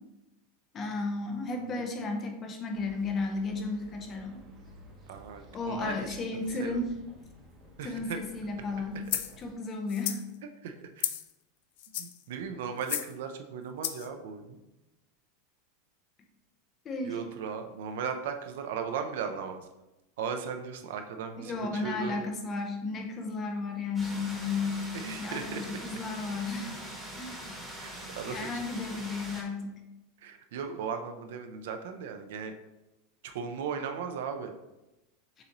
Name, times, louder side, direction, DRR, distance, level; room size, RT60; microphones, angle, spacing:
voice 1, 0.7-4.4 5.5-6.9 7.8-9.0 9.4-10.2 16.8-17.2 21.4-24.9 25.2-26.9 27.2-27.6 28.3-29.8, left 3 dB, 25° left, 3 dB, 0.6 m, -34 dB
sound 1, 2.7-9.5, equal, 25° right, 0.9 m, -54 dB
voice 2, 5.1-6.2 6.6-6.8 7.8-8.2 10.6-11.1 12.0-14.6 17.0-19.7 20.2-22.2 24.9-25.8 27.8-28.8 30.2-32.5 33.2-34.5, right 6 dB, 75° right, 6 dB, 0.5 m, -37 dB
sound 2, 9.1-9.3 9.9-10.2 11.0-11.3 11.8-12.2 12.8-13.1 13.8-14.1, left 12 dB, 65° left, 0.3 m, -33 dB
sound 3, 24.0-29.4, right 1 dB, 5° right, 1.2 m, -43 dB
6.8 x 2.6 x 2.9 m, 0.97 s
supercardioid pair, 160°, 0 cm